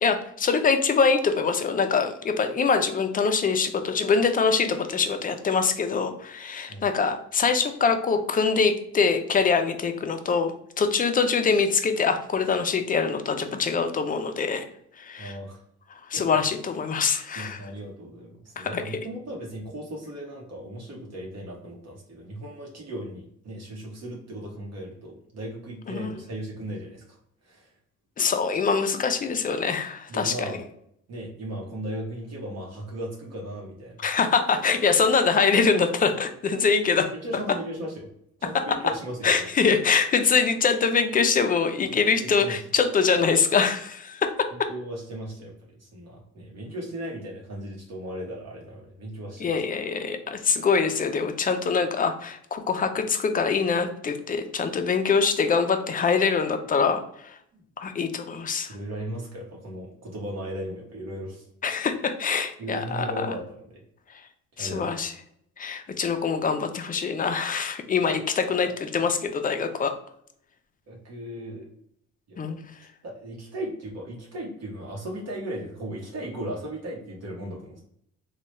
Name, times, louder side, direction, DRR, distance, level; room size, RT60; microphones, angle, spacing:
voice 1, 0.0-14.7 15.0-15.4 16.1-17.6 18.6-19.0 25.9-26.1 28.2-30.6 34.0-37.1 38.7-38.9 39.2-44.3 49.4-57.4 57.8-58.8 61.6-63.3 64.6-65.1 65.6-69.9 72.4-72.6, left 5 dB, 30° left, 7 dB, 0.4 m, -24 dB
voice 2, 15.2-15.6 16.1-16.2 17.4-27.2 27.4-27.7 30.1-30.6 31.1-34.0 37.1-38.1 38.4-39.4 41.8-42.5 44.7-49.5 58.7-61.4 62.6-63.8 64.6-64.9 68.6-68.8 70.9-71.7 72.3-72.6 73.0-77.8, right 1 dB, 60° right, -2 dB, 0.9 m, -37 dB
3.1 x 2.2 x 3.0 m, 0.71 s
cardioid pair, 90°, 30 cm